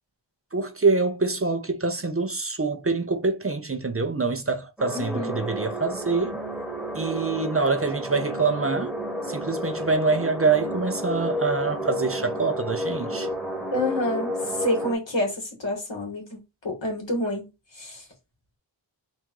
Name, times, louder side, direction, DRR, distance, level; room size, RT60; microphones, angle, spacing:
voice 1, 0.5-6.4 6.9-9.0 9.2-13.3, right 4 dB, 30° right, 0.6 m, -25 dB
sound 1, 4.8-14.9, equal, ahead, 1.3 m, -31 dB
voice 2, 4.9-5.4 13.7-17.4 17.7-18.1, left 1 dB, 75° left, 2.0 m, -28 dB
3.6 x 2.6 x 4.6 m
wide cardioid pair, 60°, 45 cm